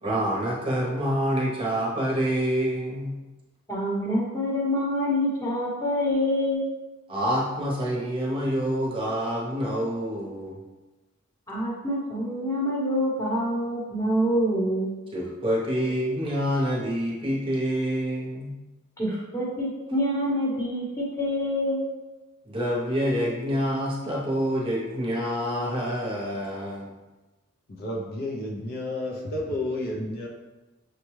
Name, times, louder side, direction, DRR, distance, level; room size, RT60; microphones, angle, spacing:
voice 1, 0.0-3.1 7.1-10.6 15.1-18.5 22.5-26.9, equal, 25° right, -4 dB, 0.8 m, -27 dB
voice 2, 3.7-6.7 11.5-15.0 19.0-21.8, equal, 15° left, -5 dB, 1.0 m, -26 dB
voice 3, 27.8-30.3, left 1 dB, 45° left, -2 dB, 0.5 m, -31 dB
6.3 x 2.3 x 3.1 m, 1.1 s
head